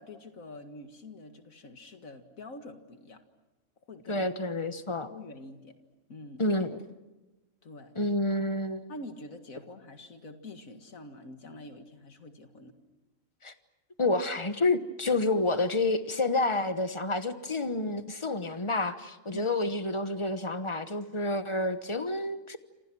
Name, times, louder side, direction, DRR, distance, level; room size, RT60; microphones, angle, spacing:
voice 1, 0.0-3.2 3.9-4.3 5.0-5.8 6.1-6.4 7.6-7.9 8.9-12.8 19.3-19.5, left 2 dB, 80° left, 7 dB, 2.4 m, -46 dB
voice 2, 4.1-5.1 6.4-6.8 7.9-8.9 13.4-13.5 14.0-22.6, left 2 dB, 25° left, 10 dB, 1.1 m, -29 dB
28.5 x 27.0 x 6.2 m, 1.1 s
omnidirectional pair, 1.4 m